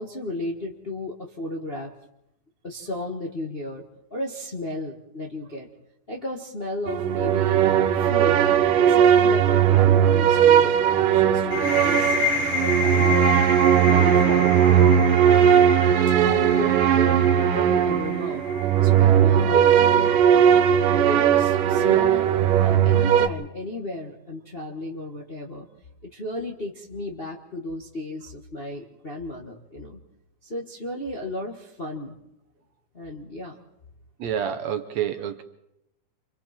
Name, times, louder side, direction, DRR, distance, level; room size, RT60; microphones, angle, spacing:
voice 1, 0.0-1.9 2.6-3.8 4.1-5.7 6.1-7.6 8.0-8.4 8.7-13.3 13.8-15.1 16.2-18.5 18.8-20.1 20.9-25.7 26.0-30.0 30.4-32.2 32.9-33.6, left 1 dB, 30° left, -1 dB, 1.1 m, -34 dB
sound 1, 6.9-23.3, right 9 dB, 90° right, 2.6 m, -18 dB
sound 2, 11.5-19.0, left 4 dB, 55° left, 6.2 m, -30 dB
voice 2, 34.2-35.4, right 9 dB, 65° right, 8 dB, 2.0 m, -28 dB
29.5 x 25.0 x 4.4 m, 0.83 s
omnidirectional pair, 3.7 m